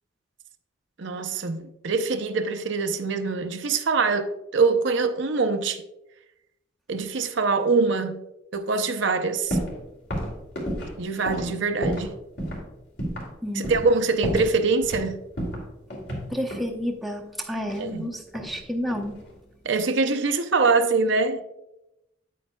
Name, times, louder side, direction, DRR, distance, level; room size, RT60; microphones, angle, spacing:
voice 1, 1.0-5.8 6.9-8.2 8.5-9.6 11.0-12.1 13.5-15.2 17.8-18.1 19.6-21.4, right 4 dB, 70° right, 0.6 m, -24 dB
sound 1, 9.5-9.8 10.1-12.1 12.4-12.6 13.0-13.3 13.6-13.9 14.2-15.1 15.4-16.7 17.7-18.6 18.9-19.3, equal, 55° left, 2.6 m, -31 dB
voice 2, 13.4-13.8 16.3-19.3, equal, ahead, 0.7 m, -30 dB
9.1 x 8.5 x 2.2 m
head